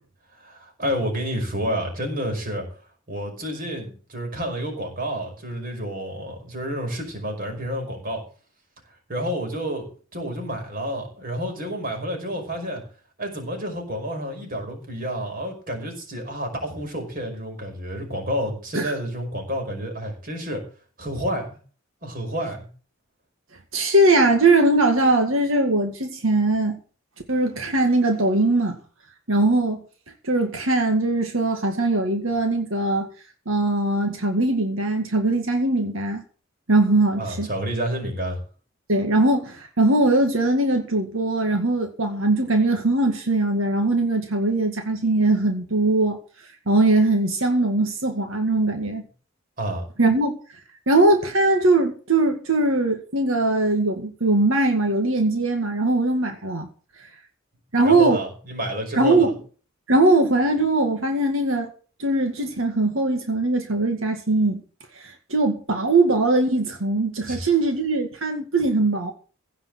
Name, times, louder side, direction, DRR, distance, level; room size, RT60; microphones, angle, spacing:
voice 1, 0.4-2.6 3.1-8.2 9.1-9.9 10.1-12.8 13.2-20.6 21.0-21.6 22.0-22.7 37.2-38.4 49.6-49.8 57.8-59.3 67.3-67.5, equal, 45° right, 5.3 m, -29 dB
voice 2, 23.7-26.8 27.3-28.8 29.3-29.8 30.2-33.1 33.5-36.2 36.7-37.5 38.9-46.2 46.7-49.0 50.0-50.4 50.9-56.7 57.7-58.2 59.0-59.3 59.9-61.7 62.0-64.6 64.9-69.1, right 2 dB, 80° right, 2.0 m, -21 dB
16.5 x 5.5 x 7.8 m
head